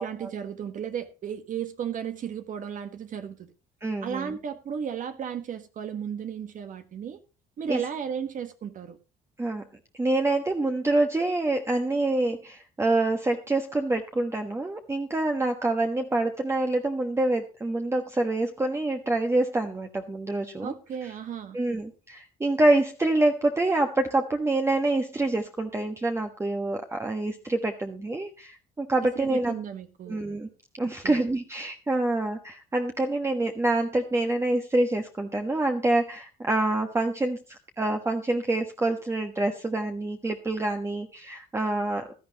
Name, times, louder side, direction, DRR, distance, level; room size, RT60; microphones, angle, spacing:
voice 1, 0.0-3.5 4.0-7.2 7.6-9.0 20.6-21.6 29.0-30.3 31.0-31.2, right 8 dB, 50° right, 1.4 m, -34 dB
voice 2, 3.8-4.4 7.7-7.8 9.4-9.6 10.0-20.7 21.5-29.5 30.1-30.5 30.8-42.1, right 2 dB, 15° right, 1.3 m, -26 dB
16.5 x 12.0 x 2.9 m
cardioid pair, 110°, 17 cm